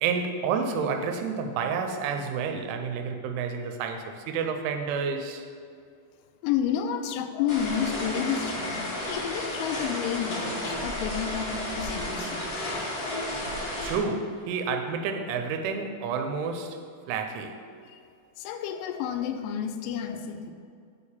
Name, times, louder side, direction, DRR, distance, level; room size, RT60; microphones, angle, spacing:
voice 1, 0.0-5.4 13.8-16.8 17.1-17.6, right 5 dB, 80° right, 5 dB, 2.9 m, -30 dB
voice 2, 6.4-13.3 18.4-20.5, left 8 dB, 80° left, 5 dB, 2.8 m, -31 dB
sound 1, 7.5-14.0, left 1 dB, 45° left, 1.9 m, -32 dB
8.5 x 4.6 x 7.1 m, 2.3 s
omnidirectional pair, 5.9 m